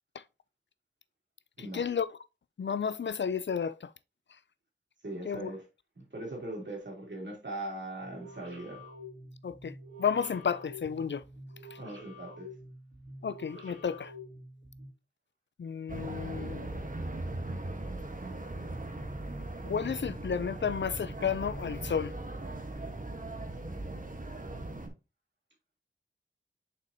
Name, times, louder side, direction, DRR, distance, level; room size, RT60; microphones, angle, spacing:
voice 1, 1.6-2.2 2.6-3.9 5.3-5.5 9.4-11.2 13.2-14.1 15.6-16.7 19.7-22.1, left 7 dB, 65° left, 0.4 m, -32 dB
voice 2, 5.0-5.6 5.9-8.8 11.8-12.5, right 1 dB, 65° right, 3.1 m, -40 dB
sound 1, 8.0-14.9, left 1 dB, 85° right, 3.9 m, -48 dB
sound 2, 15.9-24.9, right 2 dB, 45° right, 1.3 m, -39 dB
6.6 x 5.3 x 2.8 m
wide cardioid pair, 45°, 20 cm